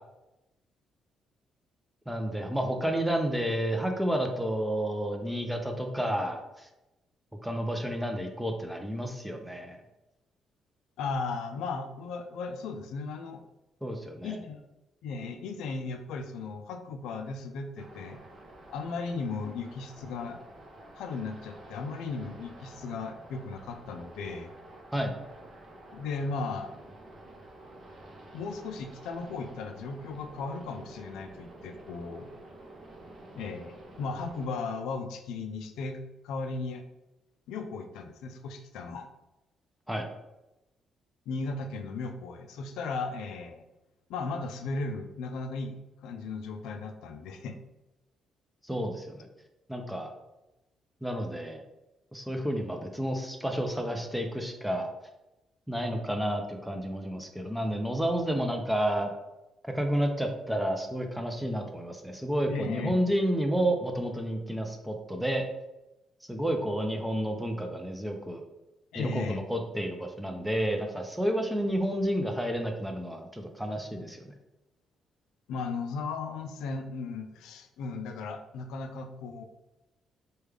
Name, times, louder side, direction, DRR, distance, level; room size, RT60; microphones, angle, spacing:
voice 1, 2.1-6.7 7.4-9.8 13.8-14.4 24.9-25.1 39.9-40.1 48.6-49.3 49.7-50.1 51.0-51.6 52.1-54.9 55.7-59.1 59.6-65.4 66.3-68.4 68.9-74.3, equal, 5° right, 4 dB, 0.5 m, -30 dB
voice 2, 11.0-13.4 14.2-14.6 15.0-18.2 18.7-20.4 21.0-24.5 25.9-26.7 28.3-32.3 33.3-36.8 37.5-39.1 41.3-43.6 44.1-45.8 46.0-47.6 62.5-63.0 68.9-69.4 75.5-79.4, left 4 dB, 90° left, 6 dB, 0.3 m, -36 dB
sound 1, 17.8-34.4, right 1 dB, 45° right, 0.7 m, -50 dB
3.2 x 2.3 x 3.4 m, 0.97 s
cardioid pair, 90°, 0 cm